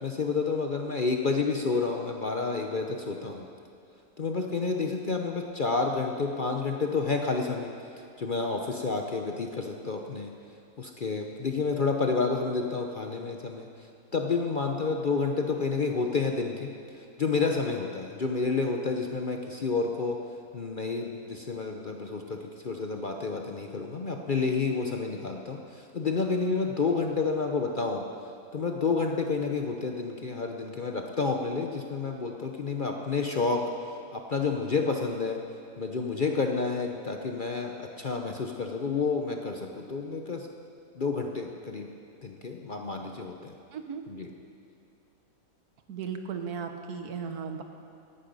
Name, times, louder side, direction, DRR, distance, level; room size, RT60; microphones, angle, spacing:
voice 1, 0.0-3.5 4.2-7.7 8.2-10.3 10.8-16.7 17.2-20.2 20.5-28.0 28.5-33.7 34.1-35.4 35.8-40.5 40.9-41.9 42.2-43.5 44.1-44.3, left 4 dB, 45° left, 3 dB, 0.7 m, -30 dB
voice 2, 43.7-44.0 45.9-47.6, right 6 dB, 85° right, 6 dB, 1.6 m, -36 dB
17.0 x 11.0 x 5.4 m, 2.5 s
omnidirectional pair, 1.6 m